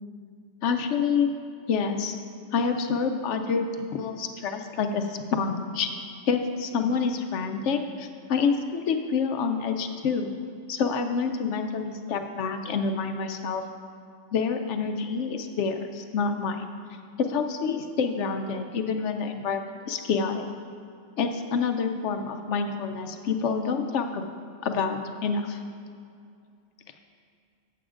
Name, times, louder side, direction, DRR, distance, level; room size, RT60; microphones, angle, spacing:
voice 1, 0.6-1.3 1.7-2.2 2.5-10.3 10.7-13.6 14.3-16.7 17.2-20.5 21.2-24.2 24.6-25.6, left 5 dB, 70° left, 6 dB, 0.9 m, -27 dB
14.0 x 7.8 x 2.5 m, 2.3 s
omnidirectional pair, 1.3 m